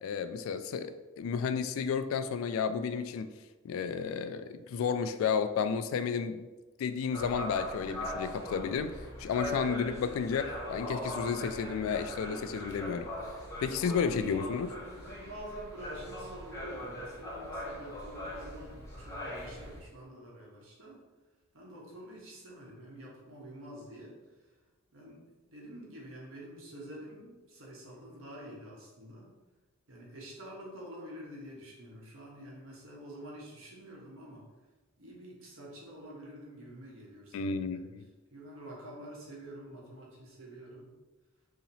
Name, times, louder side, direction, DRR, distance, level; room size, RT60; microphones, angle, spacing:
voice 1, 0.0-3.3 3.6-6.5 6.8-13.1 13.6-14.7 37.3-38.1, left 6 dB, 90° left, 14 dB, 0.3 m, -32 dB
sound 1, 7.1-19.8, equal, 15° left, 0.9 m, -40 dB
voice 2, 14.8-21.0 21.5-24.1 24.9-29.3 29.9-34.4 35.0-37.9 38.3-40.9, right 1 dB, 85° right, -3 dB, 1.1 m, -48 dB
2.9 x 2.8 x 4.0 m, 1.2 s
head